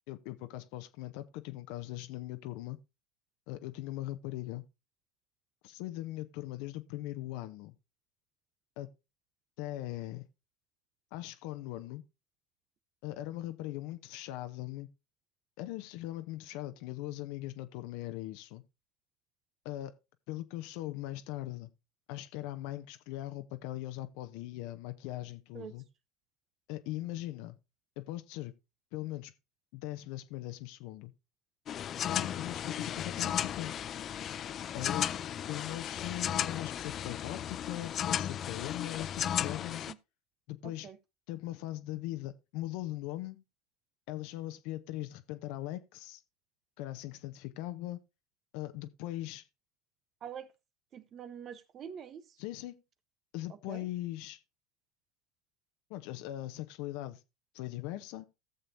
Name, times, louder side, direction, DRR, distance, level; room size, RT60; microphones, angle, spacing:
voice 1, 0.1-2.8 3.5-4.6 5.6-7.7 8.8-8.9 9.6-10.3 11.1-12.0 13.0-14.9 15.6-18.6 19.6-19.9 20.3-21.7 22.1-25.9 26.7-27.6 28.0-28.5 28.9-29.3 29.7-31.1 32.1-33.8 34.7-35.0 35.5-39.9 40.5-40.9 41.3-43.4 44.1-46.2 46.8-48.0 48.5-49.4 52.4-52.8 53.3-54.4 55.9-57.2 57.5-58.3, left 15 dB, 65° left, 0.8 m, -40 dB
sound 1, 31.7-39.9, left 10 dB, 40° left, 0.5 m, -35 dB
voice 2, 40.6-41.0 50.2-50.5 50.9-52.2 53.7-53.9, right 8 dB, 40° right, 0.7 m, -45 dB
17.0 x 6.8 x 2.7 m
hypercardioid pair, 90°, 0 cm